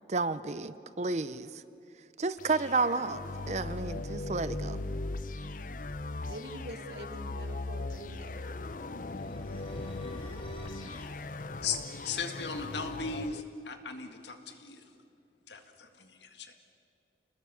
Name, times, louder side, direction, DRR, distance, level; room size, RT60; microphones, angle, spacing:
voice 1, 0.1-1.6 2.2-4.8, right 3 dB, 40° right, 14 dB, 0.6 m, -31 dB
sound 1, 2.4-13.4, left 2 dB, 50° left, 0.7 m, -39 dB
Laughter, 5.4-6.0 6.4-6.5 8.0-9.2 10.7-11.7 12.8-14.1, equal, 5° right, 5.4 m, -64 dB
voice 2, 6.3-8.4, right 1 dB, 75° right, 5 dB, 2.2 m, -45 dB
sound 2, 9.0-11.2, equal, 30° left, 4.7 m, -52 dB
voice 3, 10.8-11.1 11.6-14.9 15.5-16.5, left 5 dB, 80° left, 6 dB, 2.0 m, -38 dB
29.0 x 20.0 x 7.1 m, 2.6 s
head